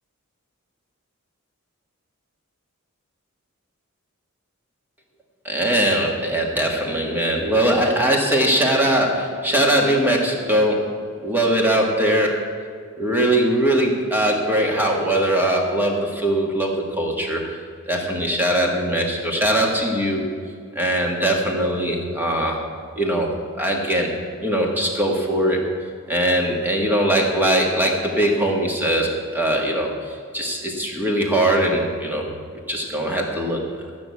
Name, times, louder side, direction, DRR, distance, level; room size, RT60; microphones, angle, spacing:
voice 1, 5.4-12.5 13.0-17.4 17.9-20.3 20.8-22.6 23.0-24.1 24.4-32.3 32.7-33.6, right 1 dB, 10° right, 0 dB, 1.8 m, -21 dB
14.0 x 6.1 x 8.3 m, 2.1 s
head